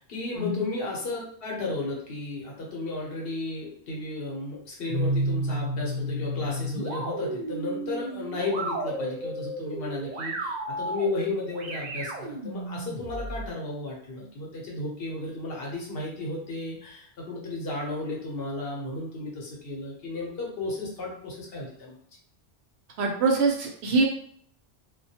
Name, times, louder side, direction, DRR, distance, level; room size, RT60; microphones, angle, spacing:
voice 1, 0.0-22.0, left 2 dB, 65° left, -2 dB, 0.9 m, -34 dB
sound 1, 4.9-13.5, right 1 dB, 55° right, 0.5 m, -32 dB
voice 2, 23.0-24.0, right 3 dB, 90° right, 2 dB, 0.9 m, -24 dB
2.3 x 2.2 x 2.7 m, 0.63 s
omnidirectional pair, 1.1 m